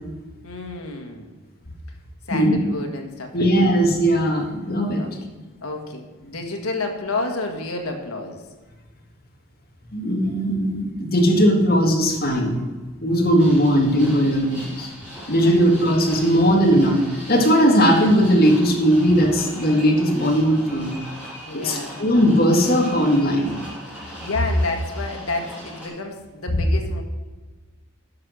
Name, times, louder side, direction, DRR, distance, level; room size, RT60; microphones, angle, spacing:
voice 1, 0.4-1.4 2.3-3.8 5.0-5.1 5.6-8.4 15.4-15.5 21.5-21.9 24.2-27.0, left 3 dB, 80° left, 3 dB, 1.7 m, -30 dB
voice 2, 3.3-5.0 9.9-12.6 13.0-14.9 15.3-20.9 21.5-23.6, equal, 45° left, 1 dB, 1.8 m, -18 dB
sound 1, 13.4-25.9, equal, 5° right, 3.1 m, -39 dB
10.5 x 6.1 x 6.3 m, 1.3 s
head